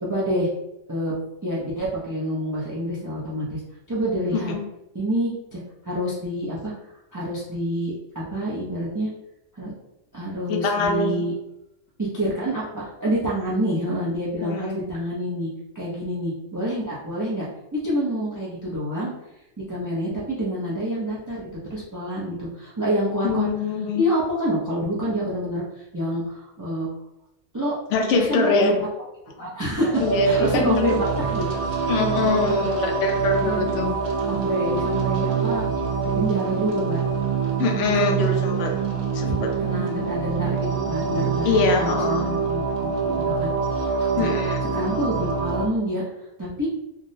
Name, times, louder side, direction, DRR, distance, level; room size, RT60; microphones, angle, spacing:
voice 1, 0.0-0.5 0.9-1.1 1.4-3.6 3.9-4.5 4.9-5.6 5.8-6.7 7.1-9.1 9.5-9.7 10.1-11.3 12.0-15.5 15.7-17.5 17.7-19.1 19.7-23.5 23.9-26.9 27.5-27.7 28.1-28.9 29.4-31.0 31.3-31.5 31.9-32.2 32.5-32.7 33.3-33.7 34.3-35.7 36.1-37.0 38.0-38.1 38.4-38.5 39.3-44.3 44.7-46.0 46.4-46.7, equal, 30° right, -6 dB, 0.3 m, -27 dB
voice 2, 10.5-11.3 14.4-14.8 23.2-24.0 27.9-28.7 30.0-31.0 31.9-33.9 37.6-38.7 39.1-39.5 41.4-42.2 44.2-44.6, left 4 dB, 70° left, 3 dB, 0.9 m, -23 dB
sound 1, 29.9-45.7, right 5 dB, 60° right, 0.8 m, -25 dB
3.6 x 2.0 x 2.6 m, 0.89 s
omnidirectional pair, 1.3 m